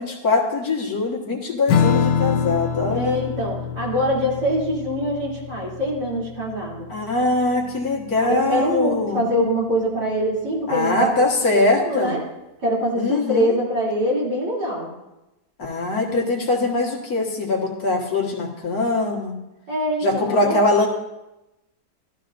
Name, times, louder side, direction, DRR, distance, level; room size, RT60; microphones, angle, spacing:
voice 1, 0.0-3.2 6.9-9.2 10.7-12.2 13.0-13.5 15.6-19.3 20.0-20.9, left 2 dB, 60° left, 0 dB, 1.9 m, -22 dB
Strum, 1.7-8.5, left 7 dB, 90° left, 1.2 m, -26 dB
voice 2, 2.9-6.9 8.2-12.2 12.6-14.9 19.7-20.6, equal, 75° right, -5 dB, 3.6 m, -24 dB
14.0 x 13.0 x 2.5 m, 0.96 s
omnidirectional pair, 1.8 m